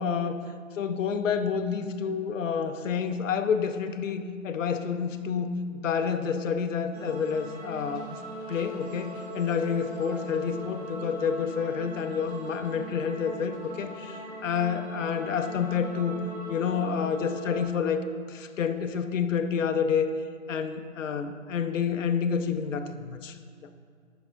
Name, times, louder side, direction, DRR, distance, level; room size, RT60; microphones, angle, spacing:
voice 1, 0.0-8.2 8.5-16.2 16.5-20.1 20.5-23.4, left 6 dB, 70° left, 8 dB, 0.5 m, -29 dB
sound 1, 6.9-17.7, equal, 50° right, 1.4 m, -40 dB
7.9 x 5.5 x 2.3 m, 2.2 s
hypercardioid pair, 175°, 40 cm